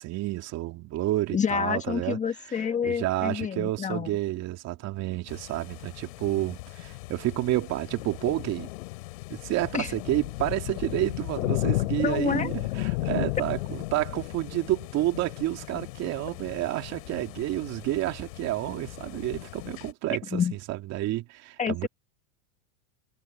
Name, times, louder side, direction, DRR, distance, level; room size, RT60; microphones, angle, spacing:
voice 1, 0.0-2.2 2.4-8.7 9.3-21.9, right 16 dB, 35° right, 2.8 m, -30 dB
voice 2, 1.3-4.1 9.7-9.9 12.0-12.5 20.3-20.6 21.6-21.9, left 7 dB, 15° left, 1.5 m, -28 dB
sound 1, 5.3-19.9, left 22 dB, 60° left, 3.2 m, -35 dB
supercardioid pair, 140°, 44 cm